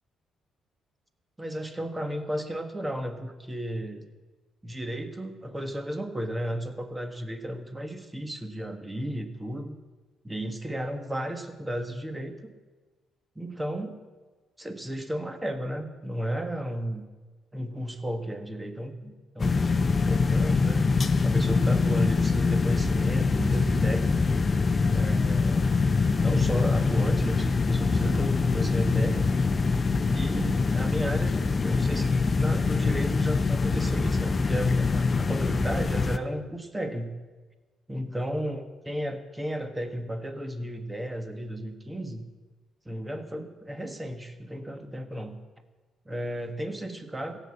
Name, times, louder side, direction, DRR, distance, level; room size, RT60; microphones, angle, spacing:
voice 1, 1.4-4.1 4.6-9.8 10.2-12.5 13.3-14.0 14.6-17.0 17.5-20.8 21.2-24.2 24.9-25.8 26.2-29.4 30.1-37.1 37.9-42.2 42.8-45.4 46.0-47.4, equal, 15° right, 8 dB, 1.5 m, -33 dB
sound 1, 19.4-36.2, left 4 dB, 30° left, 0.7 m, -24 dB
15.5 x 8.2 x 8.5 m, 1.3 s
cardioid pair, 90°, 0 cm